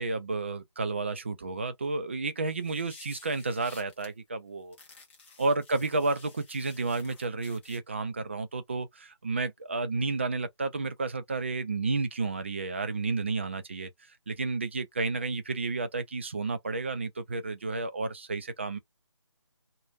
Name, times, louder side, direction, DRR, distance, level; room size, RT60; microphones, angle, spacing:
voice 1, 0.0-4.8 5.4-13.9 14.3-18.8, right 3 dB, 25° right, 0.4 m, -31 dB
sound 1, 2.5-4.1 4.7-7.8, left 4 dB, 25° left, 0.8 m, -53 dB
3.2 x 2.2 x 2.5 m
figure-of-eight pair, 155°, 15 cm